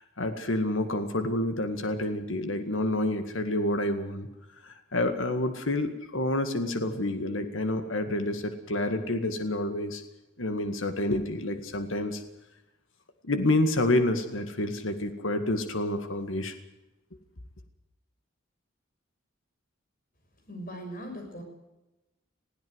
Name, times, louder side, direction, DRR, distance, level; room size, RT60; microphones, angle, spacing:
voice 1, 0.0-4.3 4.6-10.0 10.4-12.2 13.2-16.5, left 1 dB, 80° left, 8 dB, 2.0 m, -28 dB
voice 2, 20.5-21.4, equal, 45° left, 4 dB, 6.3 m, -39 dB
20.5 x 16.0 x 8.0 m, 0.97 s
head